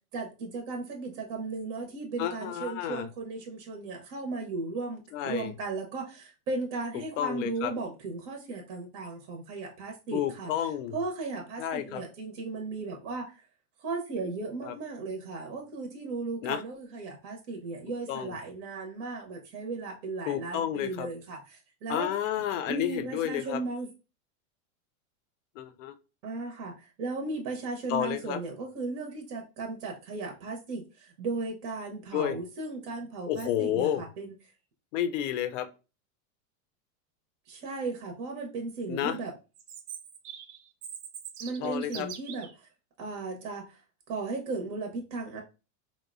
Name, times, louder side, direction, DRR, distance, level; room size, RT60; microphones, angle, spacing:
voice 1, 0.1-10.5 10.9-13.3 13.8-22.1 22.7-23.9 26.2-34.3 37.5-39.3 41.4-42.5 43.0-43.8 44.1-45.4, right 3 dB, 40° right, 0 dB, 0.6 m, -36 dB
voice 2, 2.2-3.1 5.1-5.5 7.2-7.7 10.1-10.9 11.6-12.0 14.6-14.7 16.4-16.6 18.1-18.4 20.3-21.1 21.9-23.6 25.6-25.9 27.9-28.4 32.1-32.4 33.3-34.0 34.9-35.7 38.9-39.2 41.6-42.1, left 11 dB, 60° left, 11 dB, 0.5 m, -31 dB
Chirp tweet, 39.5-42.5, right 8 dB, 85° right, 0.7 m, -43 dB
3.9 x 2.1 x 2.4 m, 0.31 s
supercardioid pair, 150°, 44 cm